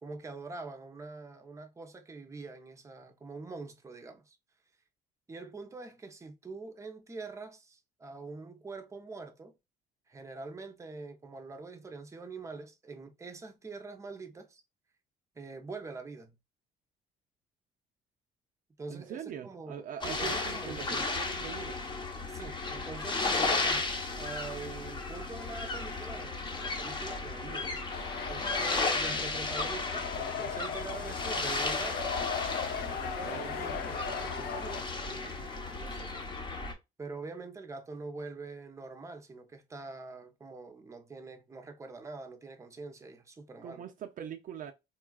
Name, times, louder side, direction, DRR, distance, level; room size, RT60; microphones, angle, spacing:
voice 1, 0.0-4.4 5.3-9.5 10.1-14.6 15.4-16.4 18.8-21.0 22.3-23.9 24.2-27.7 28.3-32.1 32.9-36.2 37.0-43.8, right 3 dB, 20° right, 0.7 m, -44 dB
voice 2, 18.9-21.8 32.7-33.5 43.6-44.7, right 9 dB, 50° right, 0.5 m, -42 dB
sound 1, 20.0-36.7, left 3 dB, 25° left, 0.9 m, -34 dB
sound 2, 27.9-34.8, left 6 dB, 70° left, 0.6 m, -38 dB
3.7 x 2.3 x 2.3 m
cardioid pair, 110°, 17 cm